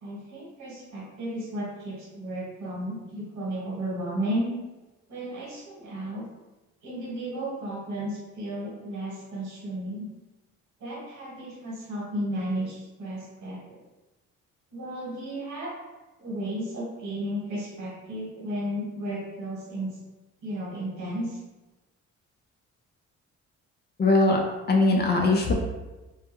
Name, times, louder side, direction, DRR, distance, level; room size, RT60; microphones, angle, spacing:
voice 1, 0.0-4.5 5.1-6.2 6.8-10.1 10.8-13.8 14.7-15.7 16.2-20.0 20.4-21.4, right 1 dB, 75° right, -5 dB, 1.2 m, -33 dB
voice 2, 24.0-24.4 24.7-25.5, left 2 dB, 35° left, 1 dB, 0.4 m, -20 dB
2.3 x 2.1 x 2.9 m, 1.1 s
cardioid pair, 90°, 30 cm